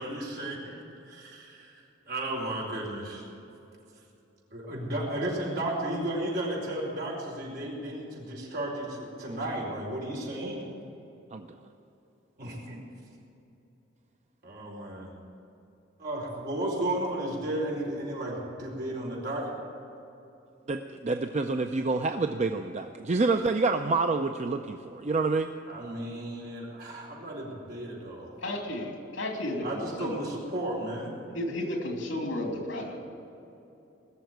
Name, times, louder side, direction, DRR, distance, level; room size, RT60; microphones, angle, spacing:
voice 1, 0.0-1.7 2.1-3.2 4.5-10.6 12.4-12.8 14.4-15.1 16.0-19.5 25.7-28.3 29.6-31.1, right 1 dB, 55° right, -3 dB, 4.5 m, -34 dB
voice 2, 20.7-25.5, right 3 dB, 35° right, 6 dB, 0.5 m, -27 dB
voice 3, 28.4-30.2 31.3-33.1, left 1 dB, 75° left, 1 dB, 2.9 m, -33 dB
20.0 x 7.0 x 9.3 m, 2.9 s
head